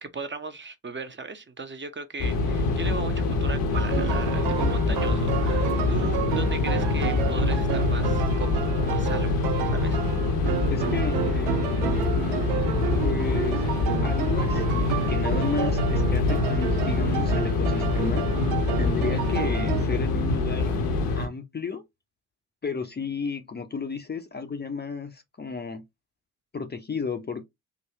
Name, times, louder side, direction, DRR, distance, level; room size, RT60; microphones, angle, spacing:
voice 1, 0.0-9.3 9.6-10.0, right 4 dB, 25° right, 0.9 m, -37 dB
sound 1, 2.2-21.3, left 3 dB, 75° left, 0.9 m, -25 dB
sound 2, 3.7-19.8, right 13 dB, 75° right, 0.6 m, -32 dB
voice 2, 10.7-12.1 13.0-13.6 14.0-18.3 18.8-20.7 21.1-21.8 22.6-25.8 26.5-27.4, left 5 dB, 25° left, 0.6 m, -33 dB
3.8 x 2.3 x 2.9 m
hypercardioid pair, 40°, 43 cm